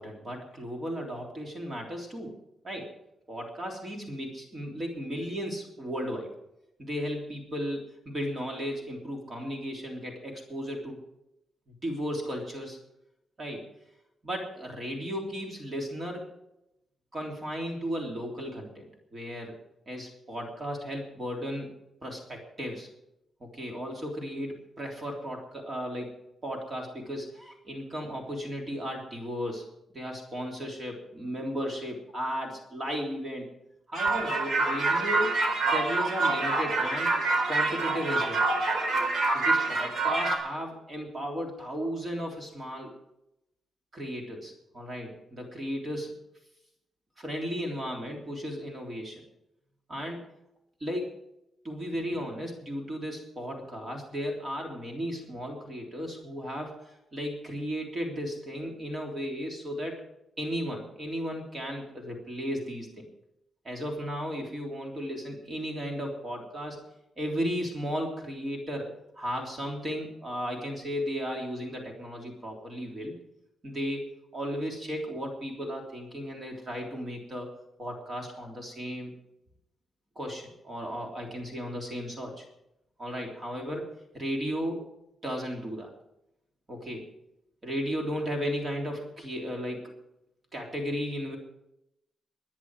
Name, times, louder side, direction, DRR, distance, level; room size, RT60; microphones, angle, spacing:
voice 1, 0.0-2.4 2.6-2.9 3.3-6.3 6.8-11.0 11.8-12.8 13.4-13.7 14.2-16.3 17.1-19.5 19.9-21.7 22.0-22.9 23.4-29.6 29.9-33.5 33.9-37.1 37.5-38.4 39.3-42.9 43.9-46.2 47.2-49.2 49.9-50.2 50.8-51.1 51.6-60.0 60.4-63.1 63.6-66.8 67.2-73.2 73.6-74.0 74.3-77.5 77.8-79.1 80.1-82.4 83.0-83.9 84.1-84.8 85.2-85.9 86.7-87.1 87.6-89.9 90.5-91.4, equal, 30° right, 1 dB, 3.4 m, -35 dB
sound 1, 33.9-40.4, right 3 dB, 55° right, 4.2 m, -26 dB
24.0 x 10.0 x 4.9 m, 0.85 s
wide cardioid pair, 140°, 0 cm